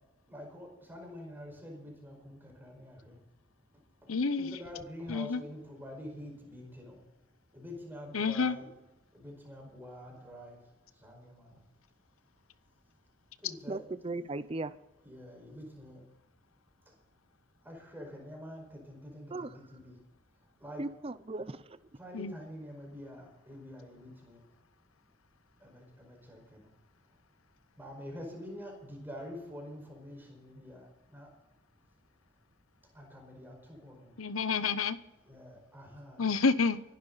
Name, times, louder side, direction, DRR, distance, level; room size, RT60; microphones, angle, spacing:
voice 1, 0.3-3.2 4.0-7.0 7.5-8.7 9.1-11.6 13.4-13.8 15.0-16.0 17.6-20.0 20.6-20.9 21.9-24.4 25.6-26.7 27.8-31.3 32.9-34.2 35.2-36.3, left 1 dB, 10° right, 0 dB, 5.0 m, -47 dB
voice 2, 4.1-4.6 5.1-5.4 8.1-8.6 22.1-22.3 34.2-35.0 36.2-36.8, left 4 dB, 80° left, 14 dB, 0.9 m, -29 dB
voice 3, 13.7-14.7 19.3-19.5 20.8-21.6, right 2 dB, 25° right, 14 dB, 0.5 m, -37 dB
24.0 x 12.0 x 4.1 m, 1.0 s
head